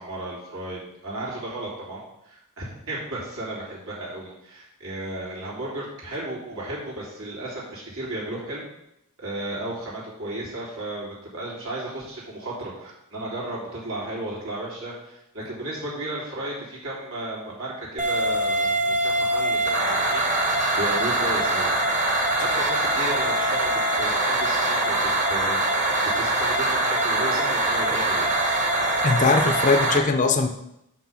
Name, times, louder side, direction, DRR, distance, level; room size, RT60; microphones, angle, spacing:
voice 1, 0.0-8.6 9.2-20.2 20.7-21.9 22.3-28.3, right 1 dB, 80° right, -6 dB, 3.3 m, -34 dB
sound 1, 18.0-30.0, right 1 dB, 35° right, 1.2 m, -23 dB
voice 2, 29.0-30.5, left 4 dB, 35° left, 5 dB, 0.5 m, -20 dB
6.7 x 6.0 x 5.7 m, 0.82 s
head